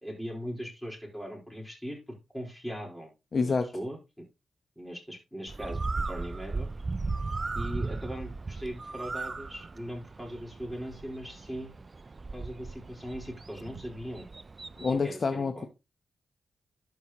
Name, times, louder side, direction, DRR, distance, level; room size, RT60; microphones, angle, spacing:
voice 1, 0.0-3.1 3.4-4.2 4.8-6.7 7.5-11.8 12.3-14.3 15.0-15.7, equal, 5° left, 4.2 m, -39 dB
voice 2, 3.3-3.7 14.8-15.7, left 4 dB, 55° left, 0.9 m, -27 dB
Bird, 5.5-15.0, right 3 dB, 40° right, 0.4 m, -37 dB
12.0 x 5.6 x 3.0 m
cardioid pair, 65°, 0 cm